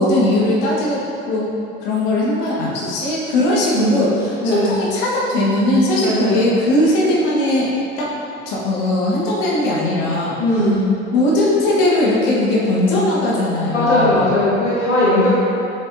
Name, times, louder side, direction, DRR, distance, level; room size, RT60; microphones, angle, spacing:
voice 1, 0.0-1.5 1.8-8.1 8.4-10.7 11.1-14.3, left 1 dB, 55° left, -5 dB, 1.4 m, -19 dB
voice 2, 4.4-4.8 6.0-6.5 10.4-10.8 13.7-15.3, left 1 dB, 85° left, -9 dB, 1.3 m, -18 dB
7.4 x 5.7 x 2.7 m, 2.7 s
figure-of-eight pair, 60°, 35 cm